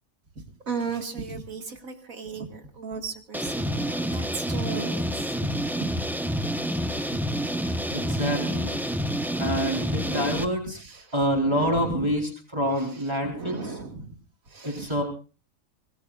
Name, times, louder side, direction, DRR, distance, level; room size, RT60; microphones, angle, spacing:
voice 1, 0.4-5.6 7.1-7.2 7.6-8.0 10.0-10.5 10.7-11.1 11.4-12.2 12.8-12.9 13.3-14.2 14.5-15.0, right 5 dB, 80° right, 5 dB, 2.2 m, -36 dB
sound 1, 3.3-10.4, equal, ahead, 0.7 m, -28 dB
voice 2, 7.9-8.7 9.4-10.8 11.1-13.7 14.6-15.0, equal, 20° right, 0 dB, 4.1 m, -27 dB
25.0 x 19.0 x 2.4 m, 0.35 s
omnidirectional pair, 1.4 m